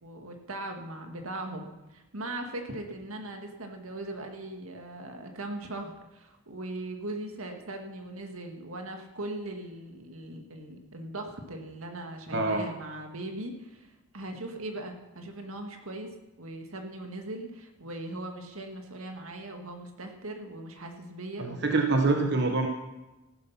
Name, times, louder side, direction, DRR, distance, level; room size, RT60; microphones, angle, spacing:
voice 1, 0.0-22.4, right 1 dB, 80° right, 4 dB, 2.0 m, -39 dB
voice 2, 12.3-12.6 21.4-22.7, right 3 dB, 55° right, 4 dB, 1.1 m, -25 dB
15.0 x 12.0 x 5.7 m, 1.0 s
head